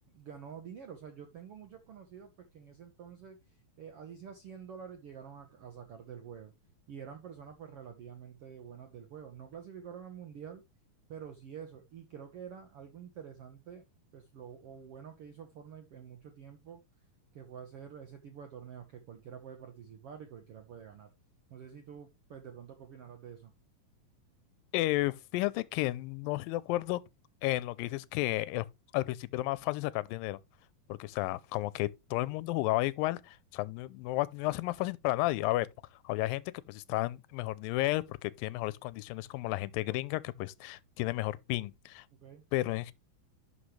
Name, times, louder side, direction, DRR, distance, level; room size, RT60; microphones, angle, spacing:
voice 1, 0.1-3.4 3.8-6.5 6.9-10.6 11.1-13.8 14.1-16.8 17.3-21.1 21.5-23.5 42.2-42.4, right 7 dB, 70° right, 1.4 m, -48 dB
voice 2, 24.7-27.0 27.4-28.7 28.9-30.4 30.9-35.7 36.0-42.1 42.5-42.9, left 18 dB, 85° left, 2.3 m, -32 dB
11.5 x 5.6 x 3.2 m
omnidirectional pair, 4.0 m